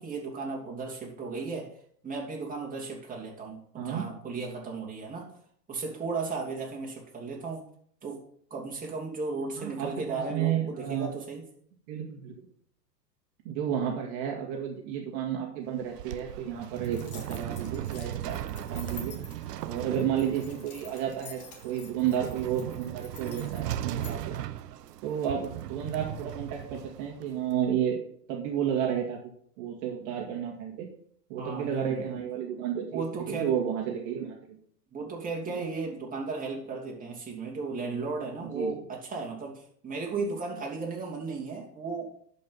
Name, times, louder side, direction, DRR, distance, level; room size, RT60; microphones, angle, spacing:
voice 1, 0.0-1.7 2.0-5.3 5.7-7.6 8.0-8.2 8.5-11.4 31.4-32.2 32.9-33.5 34.9-42.2, right 4 dB, 15° right, -1 dB, 2.9 m, -35 dB
voice 2, 9.6-11.1 11.9-12.3 13.4-18.4 18.7-19.2 19.6-24.4 25.0-28.0 28.3-29.2 29.6-30.9 31.3-34.6 35.6-35.7 38.5-38.7, right 9 dB, 50° right, 0 dB, 2.3 m, -31 dB
sound 1, 15.7-27.6, right 12 dB, 70° right, 0.9 m, -38 dB
sound 2, 16.8-24.1, left 5 dB, 30° left, 2.2 m, -49 dB
12.0 x 5.4 x 5.5 m, 0.62 s
hypercardioid pair, 105°, 50 cm